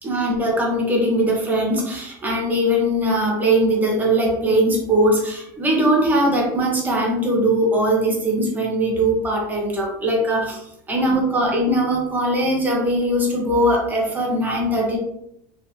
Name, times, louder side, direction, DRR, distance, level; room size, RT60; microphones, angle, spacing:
voice 1, 0.0-15.0, right 1 dB, 15° right, -1 dB, 1.3 m, -20 dB
4.4 x 3.2 x 2.8 m, 0.77 s
supercardioid pair, 135°, 10 cm